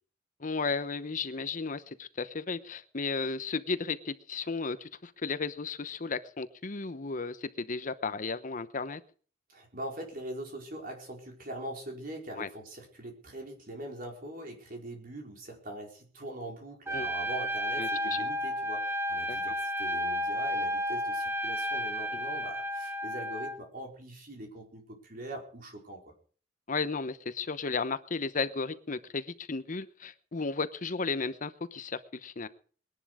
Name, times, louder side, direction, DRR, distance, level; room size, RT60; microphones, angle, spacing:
voice 1, 0.4-9.0 12.4-12.5 16.9-17.1 17.8-18.3 19.3-19.4 26.7-32.5, left 4 dB, 45° left, 13 dB, 0.9 m, -34 dB
voice 2, 9.5-26.1, right 1 dB, 50° right, 2 dB, 4.6 m, -42 dB
Trumpet, 16.9-23.6, equal, 15° right, 1.3 m, -32 dB
21.0 x 11.0 x 4.9 m, 0.42 s
head